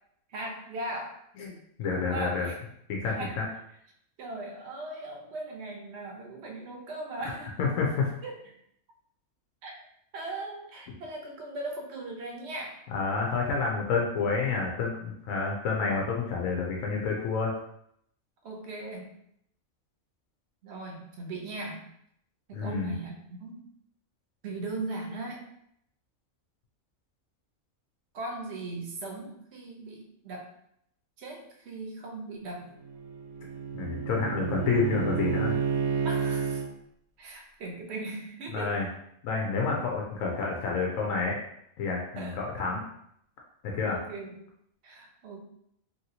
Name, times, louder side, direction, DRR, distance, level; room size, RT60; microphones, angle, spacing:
voice 1, 0.3-1.2 2.0-2.6 3.1-3.4 4.2-7.6 8.2-8.5 9.6-9.7 10.1-12.8 18.4-19.2 20.6-21.9 22.5-23.6 24.4-25.5 28.1-30.5 31.2-32.7 36.0-36.6 37.2-38.9 42.2-42.4 43.9-44.3 44.8-45.4, right 2 dB, 60° right, 1 dB, 0.9 m, -38 dB
voice 2, 1.4-2.5 2.9-3.5 7.2-7.3 7.6-8.1 12.9-17.5 22.5-22.9 33.7-35.6 38.5-38.9 39.2-41.4 41.8-42.8 43.6-44.0, left 4 dB, 75° left, -1 dB, 1.0 m, -29 dB
Bowed string instrument, 32.6-36.7, right 6 dB, 90° right, 1.1 m, -30 dB
2.9 x 2.8 x 2.8 m, 0.73 s
omnidirectional pair, 1.4 m